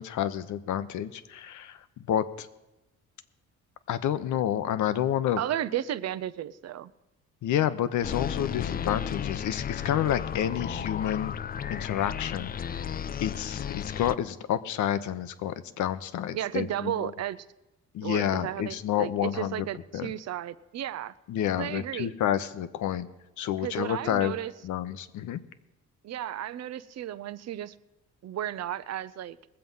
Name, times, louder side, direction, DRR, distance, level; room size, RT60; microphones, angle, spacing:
voice 1, 0.0-2.5 3.9-5.4 7.4-11.3 11.7-12.7 13.2-17.1 17.9-19.7 19.9-20.1 21.3-23.1 23.4-24.4 24.6-25.4, left 10 dB, 75° left, 13 dB, 0.9 m, -29 dB
voice 2, 5.4-6.9 10.7-10.9 16.3-17.5 18.0-21.1 21.6-22.1 23.6-24.5 26.0-27.7 28.2-29.4, right 11 dB, 60° right, 15 dB, 0.6 m, -34 dB
sound 1, 8.0-14.2, left 8 dB, 30° left, 0.4 m, -34 dB
20.5 x 7.7 x 5.5 m, 0.97 s
cardioid pair, 90°, 30 cm